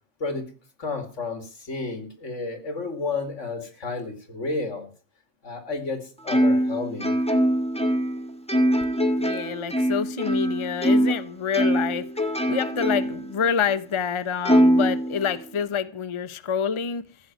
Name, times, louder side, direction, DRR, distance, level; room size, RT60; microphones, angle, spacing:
voice 1, 0.2-0.5 0.8-4.9 5.4-7.2, left 3 dB, 80° left, 7 dB, 2.7 m, -31 dB
Plucked string instrument, 6.3-11.2 11.5-13.3 13.7-13.8 14.5-15.6, equal, 5° left, 1.5 m, -22 dB
voice 2, 9.2-12.1 12.5-17.0, left 7 dB, 30° left, 13 dB, 0.7 m, -27 dB
15.0 x 6.7 x 9.2 m, 0.39 s
omnidirectional pair, 1.2 m